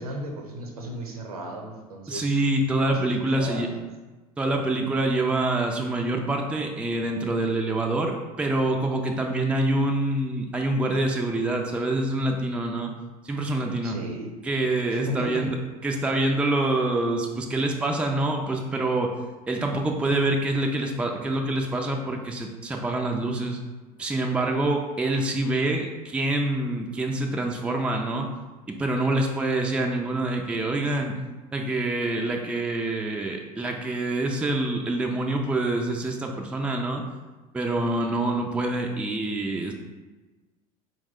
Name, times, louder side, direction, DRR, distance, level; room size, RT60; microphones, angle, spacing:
voice 1, 0.0-2.3 3.4-3.8 13.8-14.3 14.9-15.4, right 1 dB, 70° right, 2 dB, 0.8 m, -35 dB
voice 2, 2.1-3.7 4.4-12.9 13.2-14.0 14.4-15.6 15.8-19.1 19.5-23.6 24.0-28.3 28.8-31.2 31.5-37.0 37.5-39.7, right 2 dB, 5° right, 2 dB, 0.4 m, -26 dB
4.6 x 2.2 x 3.5 m, 1.2 s
figure-of-eight pair, 75°, 20 cm